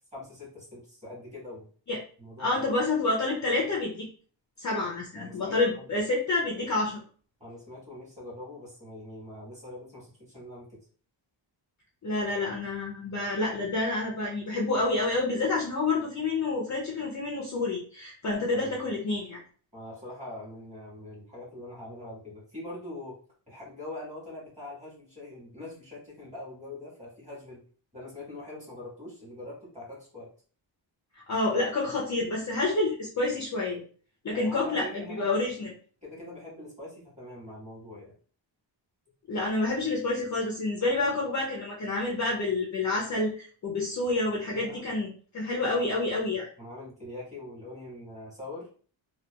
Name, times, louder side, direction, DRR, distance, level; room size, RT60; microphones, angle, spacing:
voice 1, 0.1-1.7 2.2-2.6 5.1-6.0 7.4-10.8 18.5-18.9 19.7-23.2 23.5-27.6 27.9-30.3 34.3-35.2 35.5-35.7 36.0-38.1 44.5-44.8 46.6-48.7, left 1 dB, 15° right, -5 dB, 1.3 m, -43 dB
voice 2, 2.4-4.1 4.6-7.0 12.0-19.4 31.3-33.8 34.2-35.7 39.3-46.5, left 2 dB, 40° left, -3 dB, 0.5 m, -28 dB
2.7 x 2.2 x 2.2 m, 0.42 s
wide cardioid pair, 170°, 47 cm